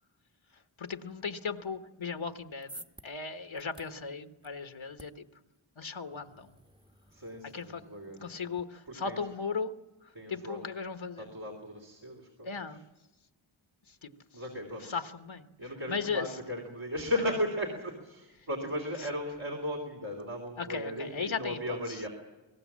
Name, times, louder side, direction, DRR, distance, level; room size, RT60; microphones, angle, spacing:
voice 1, 0.8-5.2 5.8-6.6 7.5-7.8 8.2-9.7 10.0-11.3 12.4-12.8 13.9-14.1 14.9-15.5 15.9-16.3 20.6-21.8, left 5 dB, 70° left, 8 dB, 1.3 m, -37 dB
sound 1, 2.3-8.6, right 1 dB, 10° right, 1.1 m, -55 dB
voice 2, 7.1-8.4 8.9-9.3 10.1-10.6 11.2-12.8 14.3-15.0 15.6-22.1, left 1 dB, 65° right, -1 dB, 3.4 m, -36 dB
24.5 x 19.0 x 7.4 m, 1.1 s
wide cardioid pair, 45°, 49 cm